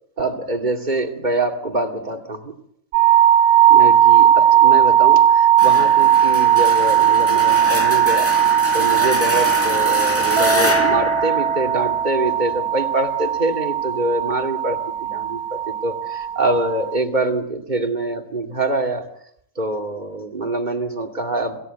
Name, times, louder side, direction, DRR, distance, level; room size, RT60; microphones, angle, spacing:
voice 1, 0.2-2.5 3.7-19.1 19.6-21.6, right 2 dB, 35° right, 4 dB, 2.6 m, -25 dB
sound 1, 2.9-17.0, right 10 dB, 75° right, 2.5 m, -17 dB
sound 2, 5.6-12.3, equal, 10° left, 1.9 m, -25 dB
Mallet percussion, 10.4-12.8, right 2 dB, 55° right, 1.3 m, -27 dB
27.0 x 16.5 x 8.2 m, 0.75 s
omnidirectional pair, 1.4 m